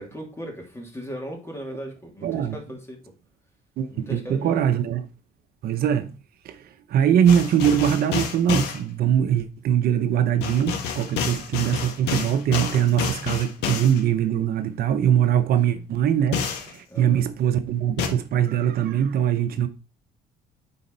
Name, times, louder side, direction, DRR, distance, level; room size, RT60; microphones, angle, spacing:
voice 1, 0.0-3.0 3.9-4.6 12.7-13.0 15.6-15.9 16.9-17.2, equal, 15° left, 2.7 m, -38 dB
voice 2, 2.2-2.6 3.8-5.1 5.6-6.1 6.4-6.6 6.9-19.7, right 9 dB, 65° right, 0.7 m, -22 dB
sound 1, 7.3-8.8 10.4-14.0 16.3-16.7 18.0-18.1, left 6 dB, 85° left, 1.5 m, -28 dB
9.7 x 4.2 x 4.0 m
cardioid pair, 110°, 17 cm